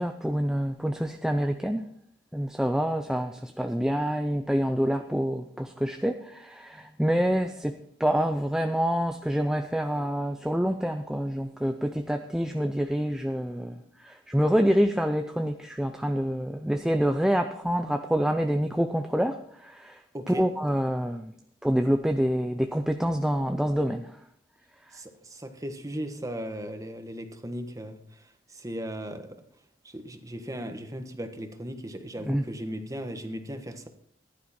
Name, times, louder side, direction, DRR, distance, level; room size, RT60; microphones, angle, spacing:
voice 1, 0.0-1.8 2.3-20.0 20.3-21.3 21.6-24.2 32.2-32.4, equal, 5° right, 6 dB, 0.5 m, -27 dB
voice 2, 20.1-20.4 24.9-29.4 29.8-33.9, equal, 20° right, 7 dB, 1.3 m, -37 dB
14.5 x 11.5 x 4.2 m, 0.67 s
head